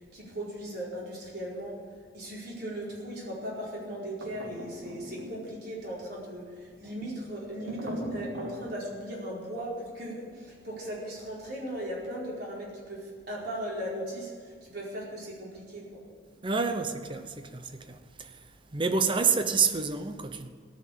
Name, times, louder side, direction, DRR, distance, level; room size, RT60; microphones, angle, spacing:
voice 1, 0.1-1.8 2.1-16.0, equal, 55° right, 4.6 m, -38 dB
sound 1, 4.2-5.7 7.6-8.6, right 1 dB, 80° right, 2.8 m, -39 dB
voice 2, 16.4-18.3 18.7-20.5, right 5 dB, 25° right, 0.8 m, -28 dB
17.5 x 6.5 x 8.6 m
head